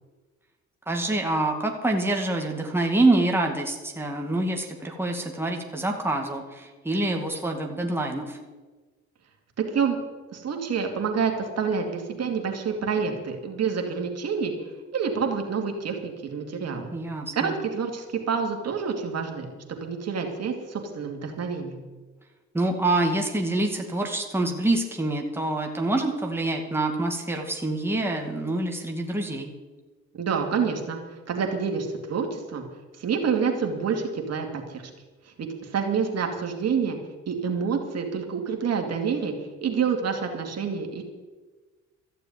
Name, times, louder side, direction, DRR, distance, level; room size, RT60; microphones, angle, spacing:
voice 1, 0.9-8.4 16.9-17.5 22.5-29.5, right 2 dB, 10° right, 1 dB, 2.2 m, -26 dB
voice 2, 10.3-14.5 14.9-16.9 17.3-19.5 19.8-21.8 30.1-31.0 31.3-32.6 33.0-34.8 35.4-37.0 37.3-39.3 39.6-41.0, right 6 dB, 55° right, 3 dB, 2.4 m, -27 dB
14.0 x 6.8 x 9.3 m, 1.3 s
cardioid pair, 90°, 30 cm